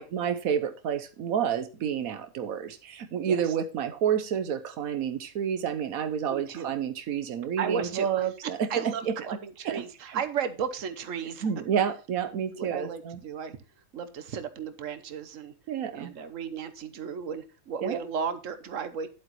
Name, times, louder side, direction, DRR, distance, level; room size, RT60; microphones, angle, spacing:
voice 1, 0.0-9.1 9.6-10.2 11.4-13.2 15.7-16.1 17.8-18.0, right 8 dB, 85° right, 9 dB, 1.3 m, -29 dB
voice 2, 6.3-6.7 7.6-8.3 8.7-11.5 12.6-13.6 13.9-15.5 15.9-19.1, right 7 dB, 65° right, 11 dB, 1.4 m, -34 dB
11.0 x 8.0 x 3.0 m, 0.32 s
omnidirectional pair, 1.4 m